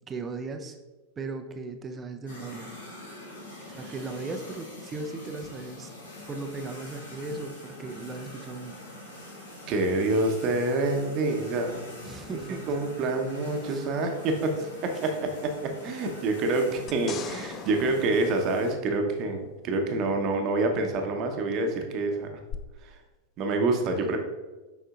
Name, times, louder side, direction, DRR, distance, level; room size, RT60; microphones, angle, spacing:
voice 1, 0.1-0.8 1.2-2.7 3.7-5.9 6.2-8.8 12.0-12.8 13.6-13.9 24.0-24.2, right 3 dB, 20° right, 6 dB, 0.6 m, -37 dB
sound 1, 2.3-18.7, left 1 dB, 65° left, 1.6 m, -44 dB
voice 2, 9.7-12.0 12.3-12.4 12.7-22.3 22.8-23.0 23.4-24.2, right 2 dB, 35° right, 4 dB, 1.0 m, -27 dB
sound 2, 16.9-19.4 22.5-22.6, left 7 dB, 30° left, 0.4 m, -41 dB
7.5 x 5.4 x 2.5 m, 1.2 s
figure-of-eight pair, 90°, 0 cm